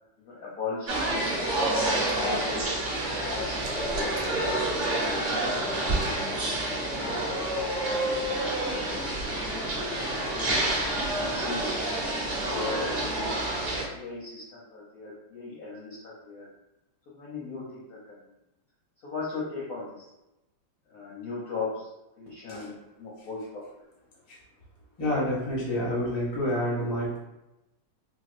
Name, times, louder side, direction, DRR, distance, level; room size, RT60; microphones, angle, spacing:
voice 1, 0.2-1.4 1.9-2.6 3.0-3.5 3.8-4.6 5.1-5.7 6.0-9.2 9.6-10.2 10.8-11.8 12.2-13.5 13.9-16.5 17.1-18.3 19.0-20.1 20.9-21.9 22.2-23.6, left 4 dB, 70° left, -7 dB, 0.8 m, -38 dB
sound 1, 0.9-13.9, right 1 dB, 45° right, 0.8 m, -28 dB
Liquid, 1.4-2.2 2.6-4.7 5.1-5.3 5.9-6.2, right 2 dB, 65° right, 1.3 m, -43 dB
voice 2, 25.0-27.2, left 1 dB, 40° left, -5 dB, 0.3 m, -28 dB
4.5 x 2.2 x 2.5 m, 0.94 s
omnidirectional pair, 2.4 m